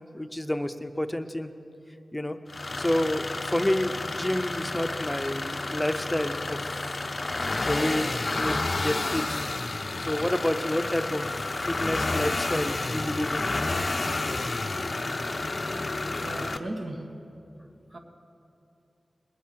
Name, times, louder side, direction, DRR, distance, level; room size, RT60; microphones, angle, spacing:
voice 1, 0.0-1.5 2.1-6.8 7.6-9.5 10.0-13.4, left 1 dB, 15° left, 0.7 m, -29 dB
sound 1, 2.5-16.6, left 2 dB, 50° left, 0.6 m, -30 dB
voice 2, 16.2-17.3 17.9-18.0, right 1 dB, 60° right, 1.6 m, -37 dB
19.5 x 8.4 x 7.6 m
cardioid pair, 55°, 0 cm